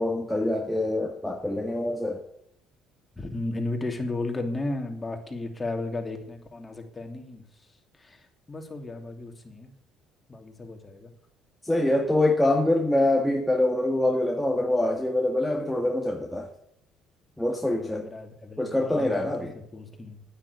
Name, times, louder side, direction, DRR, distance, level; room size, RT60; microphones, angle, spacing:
voice 1, 0.0-2.2 11.6-16.5 17.4-18.1 18.6-19.5, left 1 dB, 5° left, 1 dB, 1.8 m, -25 dB
voice 2, 3.2-7.4 8.0-9.7 10.3-11.1 17.6-20.2, left 2 dB, 20° left, 4 dB, 3.0 m, -34 dB
9.7 x 9.6 x 8.4 m, 0.73 s
supercardioid pair, 75°, 0 cm